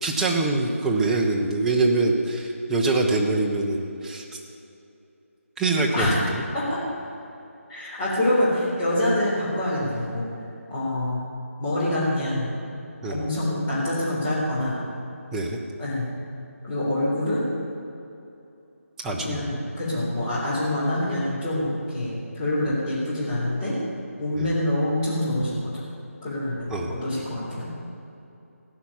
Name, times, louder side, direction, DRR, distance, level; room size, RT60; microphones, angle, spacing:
voice 1, 0.0-4.2 5.6-6.1 6.3-6.4 13.0-13.2 15.3-15.6 19.0-19.6 24.4-24.5 26.7-26.9, right 3 dB, 5° right, -1 dB, 0.6 m, -24 dB
voice 2, 7.7-10.3 10.7-11.2 11.6-12.5 13.1-14.8 15.8-16.1 16.6-17.5 19.2-23.8 24.2-25.7 26.2-27.7, left 1 dB, 15° left, -9 dB, 3.6 m, -26 dB
16.0 x 5.9 x 8.9 m, 2.8 s
figure-of-eight pair, 165°, 8 cm